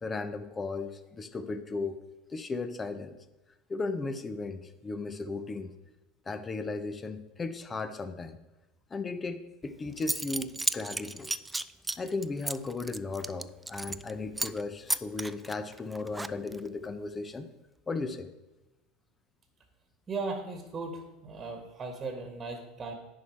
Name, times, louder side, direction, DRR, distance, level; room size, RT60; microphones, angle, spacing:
voice 1, 0.0-2.0 2.3-3.2 3.7-5.8 6.3-8.4 8.9-11.3 12.0-17.5 17.9-18.3, left 3 dB, 25° left, 10 dB, 0.8 m, -36 dB
Zipper (clothing) / Coin (dropping), 9.6-9.7 10.0-14.1 14.4-14.6 14.9-16.7, right 2 dB, 10° right, 0.3 m, -34 dB
voice 2, 20.1-22.9, right 3 dB, 25° right, 4 dB, 1.5 m, -37 dB
10.5 x 4.6 x 4.6 m, 1.0 s
figure-of-eight pair, 75°, 0 cm